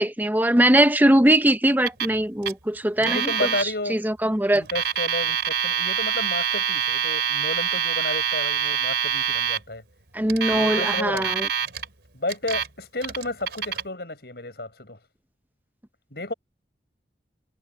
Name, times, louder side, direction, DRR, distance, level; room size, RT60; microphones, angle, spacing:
voice 1, 0.0-3.3 3.6-4.6 10.1-11.5, right 1 dB, 10° right, 0.8 m, -21 dB
Alarm, 1.9-2.2 2.4-2.5 3.0-3.6 4.6-9.6 10.3-11.8 12.3-12.7 13.0-13.8, right 8 dB, 80° right, 3.3 m, -25 dB
voice 2, 3.0-4.0 4.5-9.8 10.5-11.3 12.1-15.0 16.1-16.3, left 2 dB, 65° left, 6.8 m, -32 dB
head